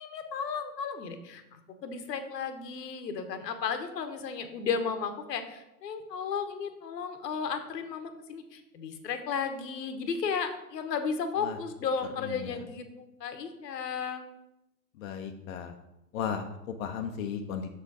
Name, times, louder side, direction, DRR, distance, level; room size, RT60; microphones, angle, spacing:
voice 1, 0.0-14.2, left 6 dB, 75° left, 8 dB, 1.1 m, -34 dB
voice 2, 12.2-12.6 15.0-15.7 16.1-17.7, left 7 dB, 55° left, 4 dB, 0.7 m, -35 dB
6.5 x 4.5 x 4.7 m, 0.91 s
hypercardioid pair, 125°, 49 cm